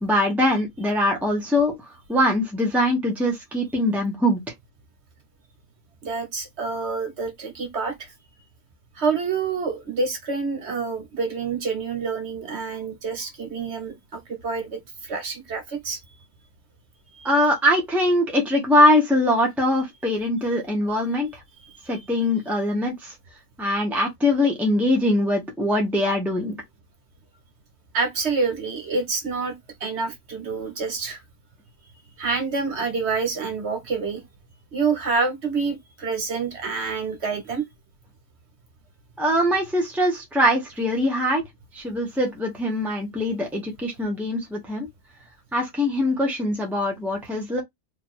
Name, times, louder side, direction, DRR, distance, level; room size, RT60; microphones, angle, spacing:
voice 1, 0.0-1.7 2.1-4.4 17.2-21.3 21.9-23.1 23.6-26.5 39.2-41.4 41.7-44.9 45.5-47.6, left 1 dB, ahead, 1.0 m, -22 dB
voice 2, 6.0-8.1 9.0-16.0 17.1-17.3 21.6-22.0 27.9-29.5 29.8-31.2 32.2-34.2 34.7-37.7, right 4 dB, 75° right, 1.5 m, -27 dB
3.0 x 2.6 x 4.3 m
omnidirectional pair, 1.1 m